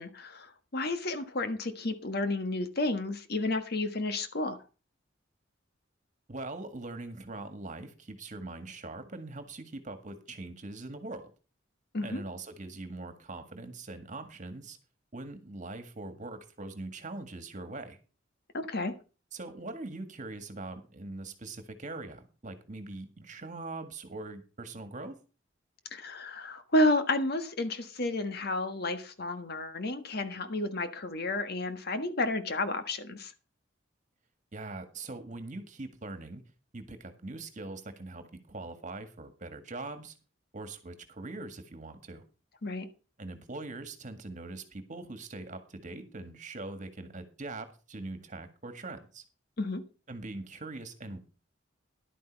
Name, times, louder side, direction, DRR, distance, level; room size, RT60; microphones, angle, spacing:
voice 1, 0.0-4.6 11.9-12.2 18.5-18.9 25.9-33.3 42.6-42.9 49.6-49.8, left 2 dB, 55° left, 9 dB, 1.4 m, -31 dB
voice 2, 6.3-11.3 12.0-14.8 15.1-18.0 19.3-25.2 34.5-36.4 36.7-40.1 40.5-42.2 43.2-49.2 50.1-51.2, right 2 dB, 40° right, 8 dB, 1.8 m, -42 dB
11.5 x 9.3 x 4.6 m, 0.34 s
head